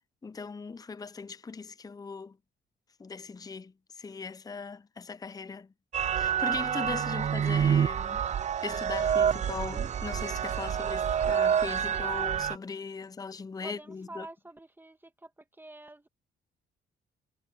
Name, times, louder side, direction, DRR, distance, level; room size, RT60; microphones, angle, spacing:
voice 1, 0.2-2.4 3.0-5.7 6.2-8.2 8.6-14.3, left 4 dB, 20° left, 0.6 m, -39 dB
sound 1, 5.9-12.6, right 8 dB, 35° right, 0.4 m, -28 dB
voice 2, 13.6-16.1, right 2 dB, 10° right, 2.1 m, -48 dB
cardioid pair, 90°, 20 cm